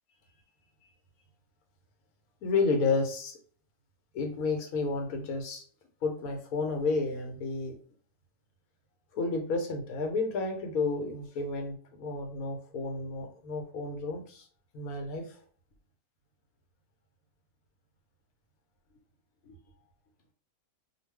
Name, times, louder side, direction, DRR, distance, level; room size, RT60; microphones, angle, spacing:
voice 1, 2.4-3.4 4.1-5.6 6.0-7.7 9.1-14.5 14.7-15.4 19.5-19.6, left 3 dB, 85° left, 4 dB, 1.2 m, -31 dB
2.4 x 2.3 x 3.3 m, 0.43 s
omnidirectional pair, 1.5 m